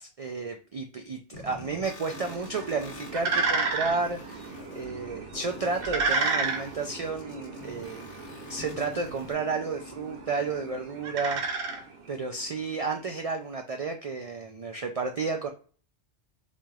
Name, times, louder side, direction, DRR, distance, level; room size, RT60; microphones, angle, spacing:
voice 1, 0.0-8.0 8.5-11.8 12.1-15.5, right 4 dB, 75° right, 4 dB, 0.3 m, -32 dB
sound 1, 1.3-9.3, left 2 dB, 80° left, 1.1 m, -48 dB
sound 2, 2.1-12.4, right 4 dB, 55° right, 0.9 m, -33 dB
4.2 x 3.0 x 2.3 m, 0.40 s
omnidirectional pair, 1.2 m